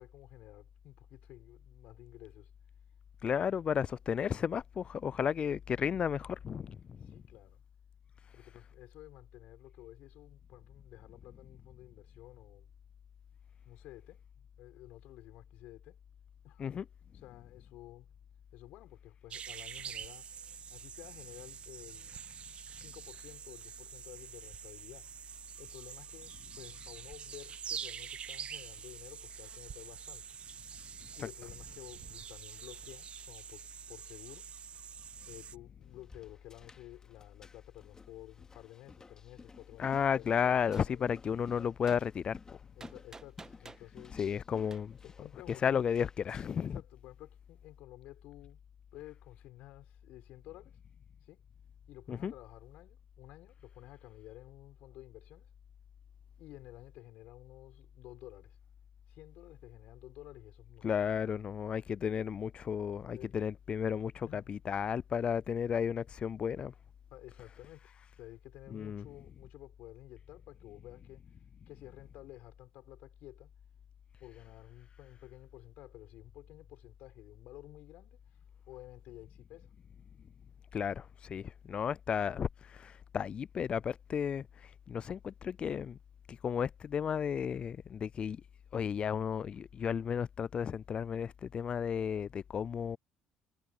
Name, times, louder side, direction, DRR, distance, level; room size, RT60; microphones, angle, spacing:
voice 1, 0.0-2.5 7.0-7.6 8.3-12.7 13.6-16.0 16.4-16.8 17.1-18.1 18.5-20.3 20.7-22.2 22.6-25.2 25.6-30.3 31.1-34.5 35.3-41.1 42.7-44.2 45.0-45.9 46.6-48.6 48.9-50.8 51.2-51.4 51.9-55.5 56.4-58.6 59.1-60.9 63.1-63.4 64.2-64.6 67.1-71.2 71.7-73.5 74.2-78.4 78.7-79.7, left 16 dB, 75° left, 6.3 m, -53 dB
voice 2, 3.2-7.1 16.6-16.8 39.8-42.6 44.1-45.0 45.6-46.8 52.1-52.3 60.8-66.7 68.7-69.1 80.7-86.0 86.3-88.4 88.7-93.0, left 7 dB, 45° left, 0.4 m, -33 dB
sound 1, 19.3-35.6, right 8 dB, 50° right, 0.5 m, -46 dB
sound 2, 35.8-46.7, left 4 dB, 25° left, 2.7 m, -55 dB
Gunshot gunfire, 40.7-40.9 41.9-42.0 42.8-43.9 44.7-44.8, right 3 dB, 25° right, 1.6 m, -50 dB
supercardioid pair, 65°, 2 cm